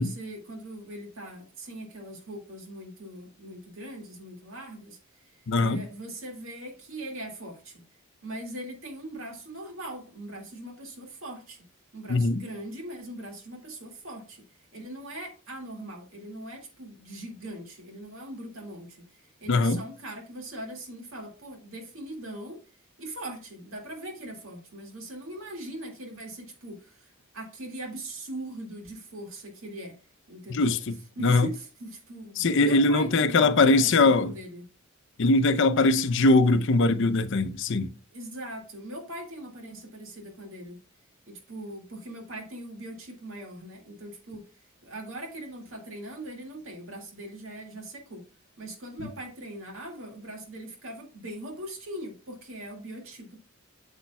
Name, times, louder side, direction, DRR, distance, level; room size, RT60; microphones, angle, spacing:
voice 1, 0.0-7.8 8.2-11.6 11.9-14.4 14.7-22.6 23.0-30.0 30.3-30.8 31.2-34.6 38.1-40.8 41.3-44.5 44.8-48.2 48.6-53.4, right 1 dB, 70° right, 2.1 m, -41 dB
voice 2, 5.5-5.8 12.1-12.4 19.5-19.8 30.5-31.5 32.4-34.3 35.2-37.9, left 3 dB, 60° left, 0.6 m, -21 dB
8.3 x 7.2 x 2.3 m
head